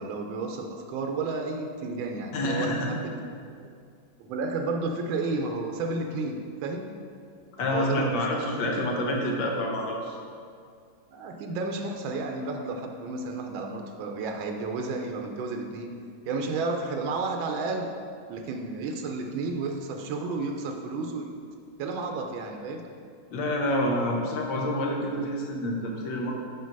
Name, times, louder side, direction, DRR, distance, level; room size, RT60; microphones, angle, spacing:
voice 1, 0.0-3.2 3.5-3.7 4.2-6.9 7.6-8.4 11.1-15.9 16.3-17.9 18.3-21.3 21.8-22.9, right 3 dB, 90° right, 3 dB, 1.4 m, -32 dB
voice 2, 2.3-2.9 7.6-10.2 23.3-26.3, left 1 dB, 80° left, 0 dB, 1.7 m, -28 dB
6.2 x 4.5 x 5.3 m, 2.3 s
omnidirectional pair, 2.1 m